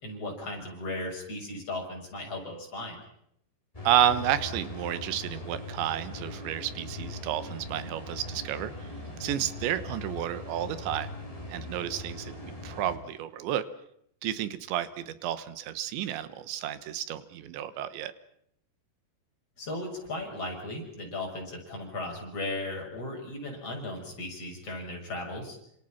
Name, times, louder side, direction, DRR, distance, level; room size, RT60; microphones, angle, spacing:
voice 1, 0.0-3.0 9.2-9.5 19.6-25.6, left 2 dB, 35° left, 1 dB, 7.4 m, -36 dB
sound 1, 3.7-13.0, left 2 dB, 10° left, 4.7 m, -40 dB
voice 2, 3.9-8.9 9.2-11.1 11.5-13.7 14.2-18.1, right 11 dB, 85° right, 13 dB, 3.5 m, -31 dB
29.0 x 26.5 x 5.9 m, 0.72 s
omnidirectional pair, 5.1 m